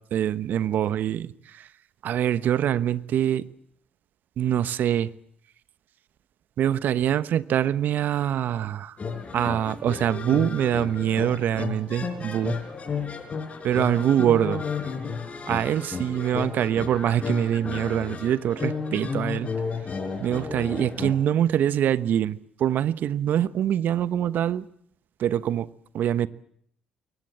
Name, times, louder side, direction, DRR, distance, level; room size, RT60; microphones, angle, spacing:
voice 1, 0.1-1.3 2.0-3.4 4.4-5.1 6.6-9.0 9.3-12.6 13.6-14.6 15.5-19.5 20.2-24.7 25.2-25.7 25.9-26.3, right 10 dB, 65° right, 1.1 m, -24 dB
sound 1, 9.0-21.1, left 5 dB, 40° left, 5.3 m, -33 dB
23.0 x 19.0 x 8.8 m
hypercardioid pair, 50°, 3 cm